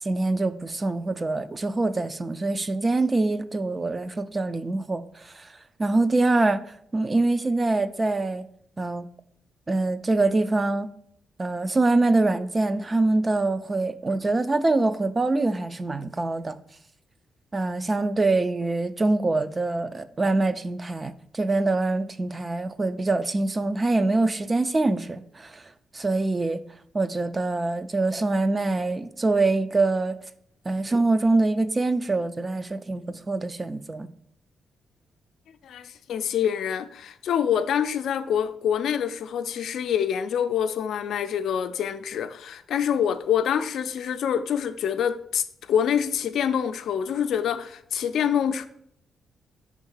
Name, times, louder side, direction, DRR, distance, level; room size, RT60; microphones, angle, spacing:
voice 1, 0.0-8.4 8.8-9.1 9.7-10.9 11.4-16.6 17.5-26.6 26.9-30.2 30.7-34.1, right 2 dB, 25° right, 0.4 m, -24 dB
voice 2, 35.6-48.7, left 8 dB, 80° left, 0.4 m, -26 dB
5.6 x 3.6 x 5.4 m
cardioid pair, 100°, 0 cm